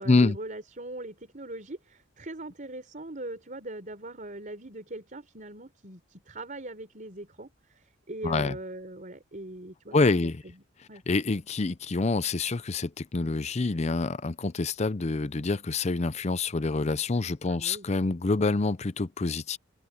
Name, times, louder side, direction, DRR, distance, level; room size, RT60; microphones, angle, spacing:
voice 1, 0.0-10.6 10.9-11.0 17.5-17.9, right 1 dB, 40° right, 4.4 m, -41 dB
voice 2, 8.2-8.6 9.9-10.4 11.1-19.6, left 3 dB, 35° left, 0.6 m, -26 dB
open air
head